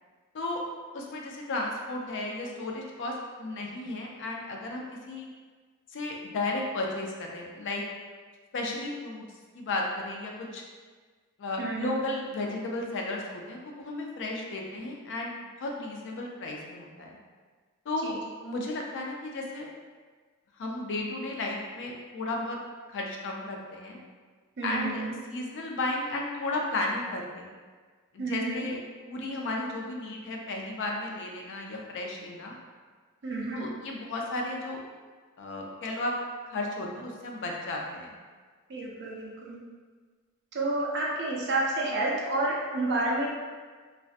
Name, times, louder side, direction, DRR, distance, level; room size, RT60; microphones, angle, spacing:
voice 1, 0.9-3.1 3.4-5.3 5.9-7.8 8.5-9.2 9.5-10.6 11.4-15.3 15.6-17.2 17.9-18.1 18.4-19.7 20.6-22.6 22.9-24.0 24.6-25.0 25.3-27.5 28.1-28.8 29.0-32.6 33.5-34.8 35.4-36.1 36.5-38.2, left 2 dB, 55° left, 0 dB, 0.4 m, -34 dB
voice 2, 11.6-12.0 18.0-18.2 24.6-25.1 28.2-28.7 33.2-33.6 38.7-39.6 40.5-43.3, right 2 dB, 50° right, -3 dB, 0.5 m, -30 dB
2.5 x 2.1 x 2.4 m, 1.5 s
head